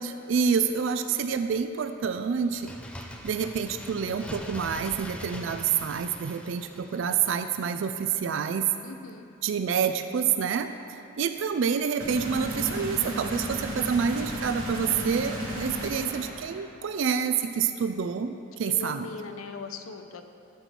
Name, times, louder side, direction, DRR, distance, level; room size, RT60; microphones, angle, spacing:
voice 1, 0.0-2.7 3.2-8.7 9.4-10.7 11.2-19.0, right 7 dB, 65° right, 8 dB, 0.3 m, -28 dB
Bird, 2.4-7.9 8.2-8.3, left 1 dB, 5° left, 0.4 m, -42 dB
voice 2, 8.8-9.3 18.7-20.2, left 4 dB, 85° left, 8 dB, 0.6 m, -40 dB
sound 1, 12.0-16.7, equal, 85° right, 2.1 m, -34 dB
11.5 x 4.6 x 6.7 m, 2.6 s
head